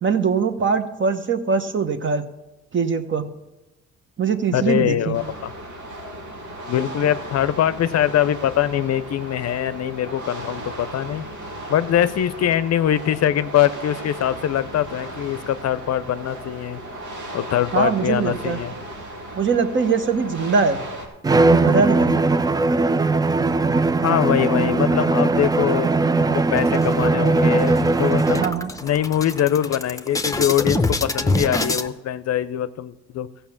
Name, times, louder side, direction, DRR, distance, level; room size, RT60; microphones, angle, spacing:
voice 1, 0.0-2.2 2.7-3.3 4.2-5.1 17.7-18.6 19.3-20.8 21.5-22.2 28.4-28.7, right 5 dB, 40° right, 9 dB, 1.0 m, -22 dB
voice 2, 4.5-5.5 6.7-11.2 11.7-16.8 17.3-18.7 24.0-25.9 26.2-28.4 28.8-33.3, left 11 dB, 60° left, 15 dB, 0.6 m, -22 dB
sound 1, 5.1-21.1, right 1 dB, 85° right, 2.6 m, -36 dB
Bowed string instrument, 21.2-28.6, right 3 dB, 15° right, 0.3 m, -19 dB
sound 2, 26.6-27.3 27.7-27.8 28.1-31.9, left 2 dB, 10° left, 0.7 m, -25 dB
14.5 x 5.6 x 7.1 m, 1.0 s
cardioid pair, 90°, 30 cm